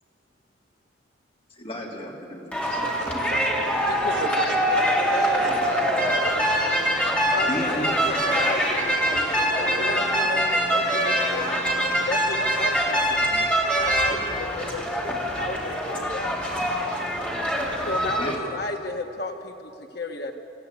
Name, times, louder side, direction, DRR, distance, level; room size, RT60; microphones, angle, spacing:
voice 1, 1.6-2.8 7.5-8.1 18.2-18.3, equal, 35° left, -2 dB, 3.5 m, -33 dB
sound 1, 2.5-18.4, equal, 5° left, 2.9 m, -24 dB
voice 2, 2.6-3.4 4.1-4.3 5.3-5.9 6.2-7.0 7.4-7.5, right 6 dB, 80° right, 12 dB, 0.7 m, -36 dB
voice 3, 3.9-5.6 7.3-11.0 11.3-11.7 12.0-13.4 13.7-16.4 17.8-20.3, left 2 dB, 60° left, 4 dB, 1.5 m, -33 dB
26.5 x 14.5 x 8.5 m, 2.9 s
head